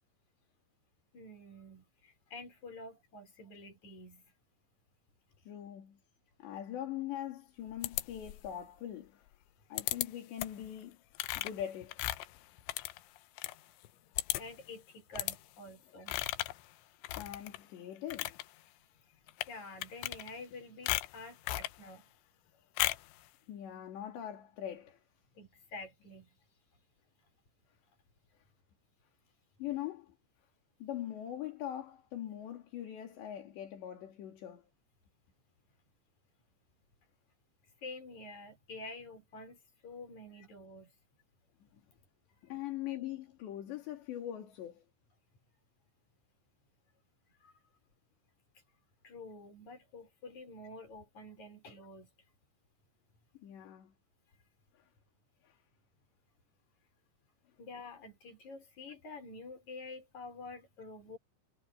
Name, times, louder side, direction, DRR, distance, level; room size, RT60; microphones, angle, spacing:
voice 1, 1.1-4.2 12.8-12.9 14.4-16.2 19.5-22.1 25.3-26.3 37.8-40.9 47.4-47.5 49.0-52.1 57.6-61.2, left 2 dB, 40° left, 6.7 m, -48 dB
voice 2, 5.4-6.0 6.4-9.2 9.7-11.0 11.4-12.0 17.2-18.4 23.5-25.0 29.6-30.1 30.8-34.6 42.4-44.8 53.4-53.9 54.7-54.9 55.4-55.6, left 11 dB, 70° left, 5.1 m, -42 dB
sound 1, 7.8-8.5 9.8-10.1 10.4-10.7 11.2-13.6 13.9-14.0 14.2-14.6 15.2-15.4 16.1-16.6 17.0-17.6 18.0-18.4 19.3-19.5 19.8-20.5 20.9-21.8 22.8-23.1, left 17 dB, 85° left, 3.2 m, -36 dB
omnidirectional pair, 5.3 m